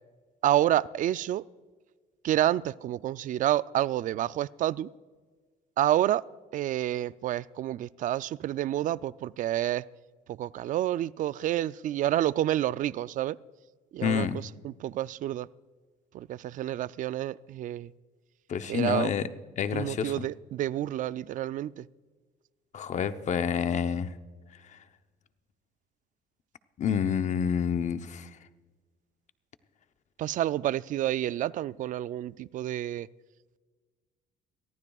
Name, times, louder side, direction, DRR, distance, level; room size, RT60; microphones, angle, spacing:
voice 1, 0.4-1.4 2.2-4.9 5.8-6.2 6.5-9.8 10.3-13.4 13.9-14.3 14.6-15.5 16.1-17.9 18.7-19.1 19.7-21.9 30.2-33.1, right 13 dB, 50° right, 19 dB, 0.4 m, -29 dB
voice 2, 14.0-14.4 18.5-19.3 19.6-20.3 22.7-24.1 24.7-24.8 26.8-28.3, left 7 dB, 45° left, 10 dB, 0.8 m, -28 dB
23.0 x 14.5 x 2.4 m, 1.4 s
cardioid pair, 110°, 17 cm